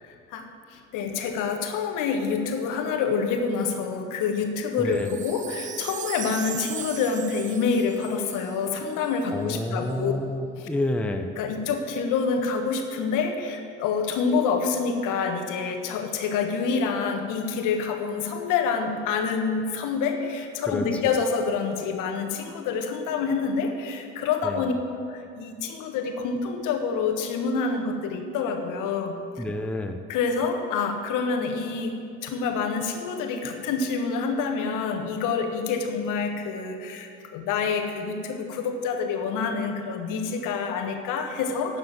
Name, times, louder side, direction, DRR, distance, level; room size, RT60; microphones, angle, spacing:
voice 1, 0.0-10.1 10.6-10.7 11.4-24.7 25.1-29.4 30.1-41.8, left 5 dB, 60° left, 5 dB, 1.4 m, -27 dB
voice 2, 4.8-5.2 9.3-11.3 20.7-21.2 24.4-24.7 29.4-30.0, left 1 dB, 5° left, 5 dB, 0.7 m, -29 dB
Wind chime, 4.9-9.3 9.8-9.9, right 9 dB, 20° right, 0.4 m, -38 dB
11.5 x 7.0 x 7.2 m, 2.4 s
figure-of-eight pair, 55°, 37 cm